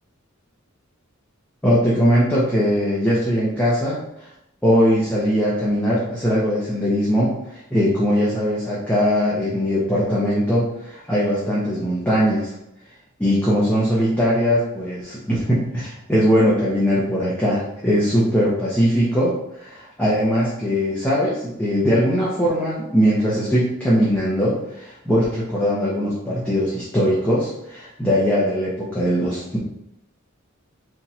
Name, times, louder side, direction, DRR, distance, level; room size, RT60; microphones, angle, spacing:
voice 1, 1.6-4.0 4.6-12.5 13.2-29.6, equal, 5° left, -8 dB, 0.8 m, -20 dB
3.6 x 2.8 x 4.2 m, 0.80 s
head